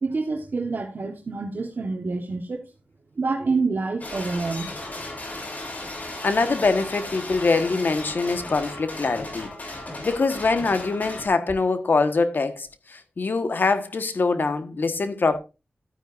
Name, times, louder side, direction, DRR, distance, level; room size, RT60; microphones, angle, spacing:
voice 1, 0.0-2.7 3.2-4.8, right 3 dB, 70° right, 1.4 m, -27 dB
sound 1, 4.0-11.3, left 2 dB, 50° left, 3.6 m, -36 dB
voice 2, 6.2-9.5 10.0-15.4, left 3 dB, 70° left, 1.4 m, -23 dB
13.0 x 9.9 x 2.6 m
wide cardioid pair, 70°, 3 cm